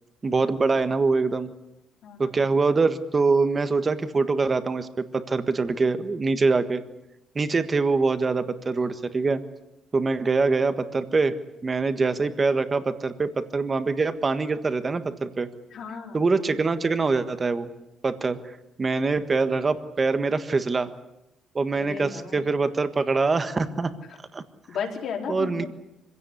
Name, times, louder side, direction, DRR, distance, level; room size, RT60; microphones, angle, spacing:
voice 1, 0.2-1.5 2.2-6.8 7.3-9.4 9.9-11.3 11.6-15.5 16.1-17.7 18.0-20.9 21.5-23.9 24.3-24.4 25.3-25.6, right 4 dB, 25° right, 10 dB, 1.5 m, -24 dB
voice 2, 2.0-2.4 15.7-16.3 21.7-22.4 24.1-24.2 24.7-25.7, left 6 dB, 60° left, 1 dB, 4.4 m, -34 dB
25.0 x 16.5 x 9.8 m, 0.88 s
cardioid pair, 140°, 0 cm